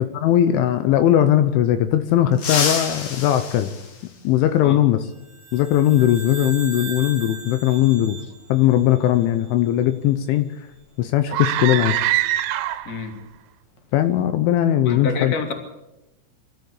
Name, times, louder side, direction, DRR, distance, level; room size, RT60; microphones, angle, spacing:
voice 1, 0.0-3.7 4.2-5.0 5.5-8.2 8.5-10.5 11.0-12.0 13.9-15.3, left 12 dB, 75° left, 10 dB, 3.2 m, -19 dB
sound 1, 2.3-4.7 6.4-6.5 7.7-7.8 9.4-9.6 10.0-10.2 10.6-12.8 13.1-13.3 13.8-14.2, left 5 dB, 45° left, 2.8 m, -30 dB
sound 2, 5.2-9.7, right 3 dB, 30° right, 1.9 m, -38 dB
sound 3, 11.3-13.1, right 14 dB, 85° right, 3.6 m, -23 dB
voice 2, 14.8-15.5, left 4 dB, 25° left, 4 dB, 2.4 m, -28 dB
25.5 x 13.5 x 8.5 m, 0.93 s
omnidirectional pair, 5.9 m